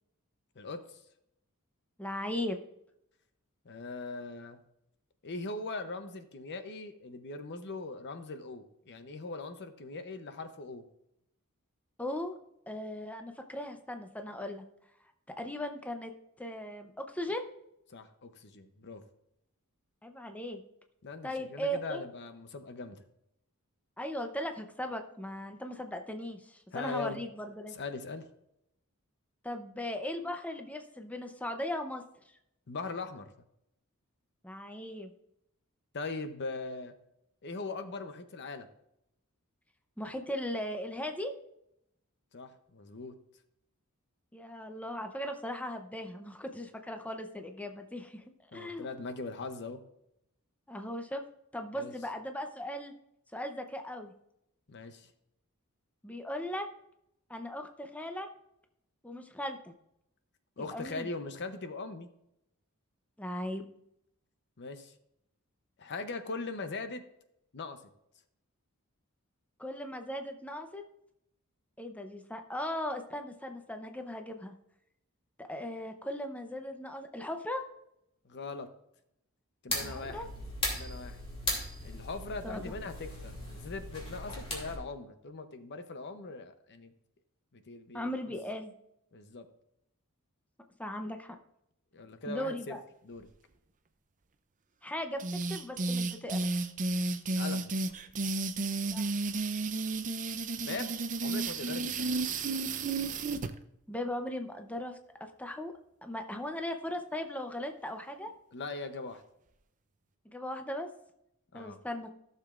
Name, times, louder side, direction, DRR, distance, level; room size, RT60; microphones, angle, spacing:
voice 1, 0.6-1.0 3.6-4.6 5.2-10.8 17.9-19.0 21.0-23.0 26.7-27.2 27.7-28.3 32.7-33.3 35.9-36.9 37.4-38.7 42.3-43.1 48.5-49.8 51.7-51.9 54.7-55.1 60.6-62.1 64.6-64.9 65.8-67.0 67.5-67.8 78.2-78.7 79.6-80.3 80.7-81.2 81.8-86.9 87.5-88.1 89.1-89.5 91.9-92.8 93.0-93.3 97.3-97.7 100.6-101.0 101.2-102.2 108.5-109.2 111.5-111.8, left 3 dB, 55° left, 9 dB, 0.7 m, -40 dB
voice 2, 2.0-2.6 12.0-12.4 12.7-14.6 15.4-16.1 16.4-17.5 20.0-20.6 21.2-22.0 24.0-27.8 29.4-32.0 34.4-35.1 40.0-41.3 44.3-48.2 48.5-49.0 50.7-51.2 51.5-52.9 53.3-54.1 56.0-56.7 57.3-58.3 59.0-59.7 60.7-61.1 63.2-63.7 69.6-70.8 71.8-74.5 75.4-77.6 79.7-80.3 82.4-82.7 87.9-88.7 90.8-91.4 92.3-92.8 94.8-95.2 95.5-96.5 98.9-99.1 103.9-105.7 106.0-108.3 110.3-110.9 111.5-112.1, left 1 dB, 5° left, 5 dB, 0.6 m, -38 dB
sound 1, 79.7-84.8, left 1 dB, 25° left, 2.7 m, -38 dB
sound 2, 95.2-103.5, right 3 dB, 35° right, 0.5 m, -32 dB
15.0 x 6.7 x 2.5 m, 0.79 s
head